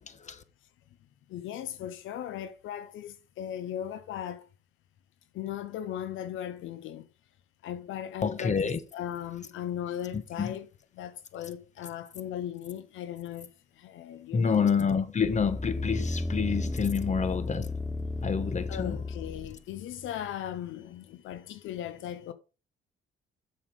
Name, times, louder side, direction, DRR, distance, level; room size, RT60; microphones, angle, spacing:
voice 1, 0.1-0.4 8.2-8.8 10.4-10.6 14.3-17.7 18.2-19.0, left 6 dB, 35° left, 1.3 m, -28 dB
voice 2, 1.3-4.5 5.3-7.1 7.6-10.7 10.9-14.7 18.7-22.3, left 10 dB, 80° left, 0.7 m, -38 dB
sound 1, 15.2-19.6 20.1-20.2, left 2 dB, 5° left, 0.5 m, -33 dB
7.3 x 6.6 x 4.9 m
cardioid pair, 90°, 20 cm